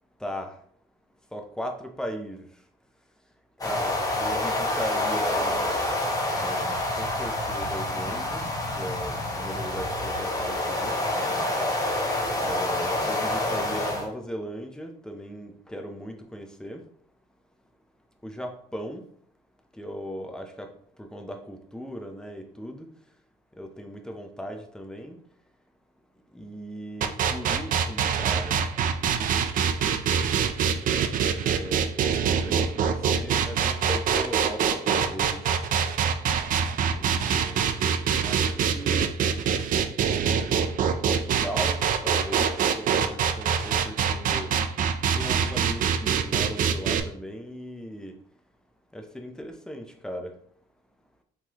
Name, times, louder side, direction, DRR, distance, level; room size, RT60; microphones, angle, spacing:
voice 1, 0.2-0.6 1.3-2.5 3.6-5.9 6.3-8.4 8.8-11.0 12.4-16.9 18.2-19.1 19.8-20.7 21.0-22.9 23.6-25.2 26.3-28.7 29.2-29.3 29.8-30.3 31.5-31.9 32.2-35.4 36.9-37.8 38.2-39.1 41.1-44.5 45.1-48.2 48.9-50.3, equal, 5° left, 4 dB, 0.6 m, -38 dB
sound 1, 3.6-14.0, left 1 dB, 20° left, 1.3 m, -27 dB
sound 2, 27.0-47.0, right 7 dB, 55° right, 0.5 m, -24 dB
4.6 x 3.7 x 2.9 m, 0.64 s
cardioid pair, 110°, 17 cm